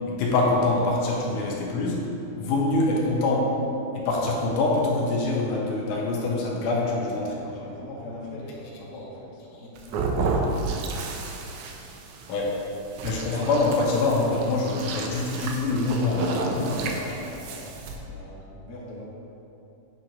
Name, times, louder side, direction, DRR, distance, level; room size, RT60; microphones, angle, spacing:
voice 1, 0.1-2.0 2.4-3.5 3.9-7.5 12.3-12.6 13.0-16.7, left 2 dB, 85° left, -3 dB, 2.8 m, -25 dB
voice 2, 6.8-10.1 16.0-19.0, left 1 dB, 55° left, -6 dB, 1.1 m, -40 dB
sound 1, 9.8-18.0, right 3 dB, 80° right, 1.8 m, -32 dB
8.9 x 6.3 x 2.9 m, 2.8 s
omnidirectional pair, 4.2 m